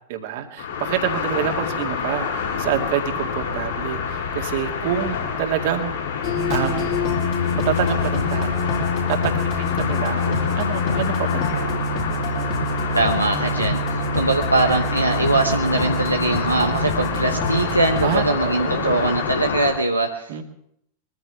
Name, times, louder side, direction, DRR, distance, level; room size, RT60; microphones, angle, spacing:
voice 1, 0.1-5.9 6.5-6.9 7.5-8.8 9.1-11.7 14.1-14.2 18.0-19.1 20.3-20.4, right 10 dB, 50° right, 4 dB, 2.1 m, -27 dB
sound 1, 0.6-19.7, left 6 dB, 60° left, 7.2 m, -27 dB
sound 2, 6.2-18.2, left 2 dB, 45° left, 3.7 m, -25 dB
voice 2, 12.9-20.4, right 2 dB, 85° right, 2 dB, 1.1 m, -22 dB
22.5 x 14.5 x 3.5 m, 0.72 s
figure-of-eight pair, 90°, 0 cm